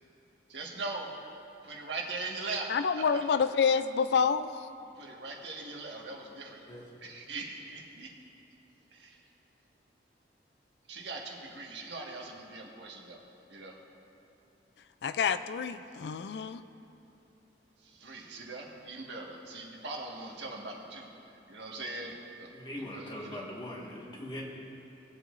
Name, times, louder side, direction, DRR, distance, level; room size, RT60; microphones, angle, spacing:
voice 1, 0.5-1.1 1.6-2.7 5.0-6.6 7.0-8.1 8.9-9.2 10.9-13.2 13.5-13.7 18.0-21.1 21.5-22.5 22.9-23.4, right 3 dB, 75° right, -1 dB, 1.6 m, -40 dB
voice 2, 2.7-4.7 15.0-16.6, left 6 dB, 65° left, 12 dB, 0.3 m, -28 dB
voice 3, 22.5-24.5, left 1 dB, 25° left, -3 dB, 1.6 m, -41 dB
20.5 x 8.2 x 2.5 m, 2.9 s
head